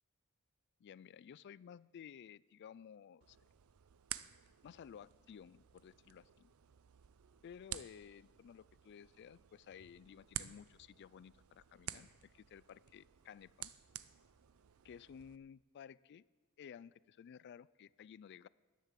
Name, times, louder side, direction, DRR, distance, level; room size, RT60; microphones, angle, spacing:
voice 1, 0.8-3.4 4.6-6.5 7.4-13.7 14.8-16.2 16.6-18.5, left 8 dB, 55° left, 21 dB, 0.3 m, -55 dB
sound 1, 3.2-15.4, right 12 dB, 80° right, 0.5 m, -52 dB
10.5 x 10.5 x 7.5 m, 1.3 s
head